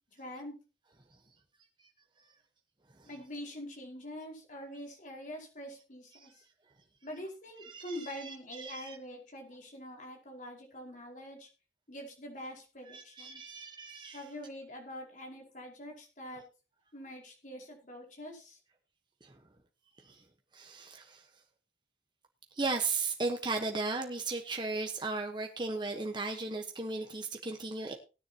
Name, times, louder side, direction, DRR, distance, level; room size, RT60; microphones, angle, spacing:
voice 1, 0.1-0.5 3.0-6.4 7.0-11.5 11.9-13.6 14.1-16.4 16.9-18.6, equal, 45° left, 0 dB, 5.0 m, -45 dB
voice 2, 7.6-9.0 12.9-14.2 19.2-19.4 20.0-20.2 20.5-21.3 22.5-27.9, right 3 dB, 25° right, 3 dB, 1.2 m, -36 dB
18.5 x 10.0 x 2.9 m, 0.32 s
head